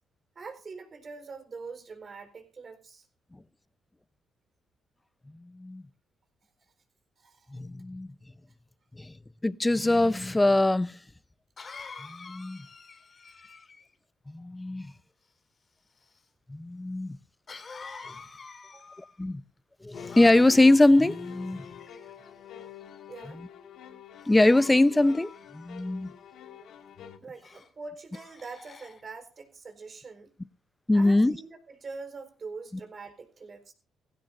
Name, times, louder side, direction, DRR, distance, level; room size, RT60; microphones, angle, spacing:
voice 1, 0.4-3.1 7.2-7.6 18.6-19.0 23.1-23.4 27.2-30.3 30.9-33.7, right 4 dB, 40° right, 4.2 m, -44 dB
voice 2, 5.4-5.8 7.5-8.1 9.0-9.1 9.4-11.0 12.0-12.6 14.3-14.9 16.5-17.2 19.2-19.4 19.8-21.7 23.4-23.5 24.3-26.1 30.9-31.4, left 2 dB, 15° left, 0.6 m, -22 dB
Cough, 10.5-10.6 11.6-13.9 17.5-19.2 19.9-20.8 21.6-22.3 22.9-23.2 24.2-25.8 27.4-27.7 28.1-29.0, left 4 dB, 40° left, 2.2 m, -47 dB
sound 1, 19.9-27.2, left 8 dB, 75° left, 1.8 m, -46 dB
17.5 x 16.0 x 2.6 m
cardioid pair, 90°, 0 cm